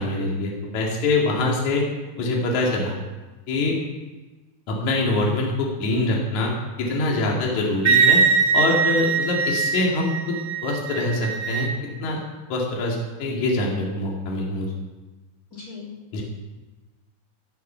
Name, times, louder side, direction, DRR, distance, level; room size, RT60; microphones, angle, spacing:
voice 1, 0.0-1.8 2.2-2.9 3.5-3.8 4.7-8.2 8.5-10.4 10.6-11.7 12.0-12.2 12.5-14.7 16.1-16.2, left 2 dB, 55° left, -2 dB, 3.6 m, -24 dB
Wind instrument woodwind instrument, 7.8-11.7, right 6 dB, 50° right, 1.9 m, -21 dB
voice 2, 15.5-16.2, left 5 dB, 25° left, -3 dB, 3.2 m, -40 dB
18.0 x 11.0 x 5.7 m, 1.2 s
omnidirectional pair, 4.3 m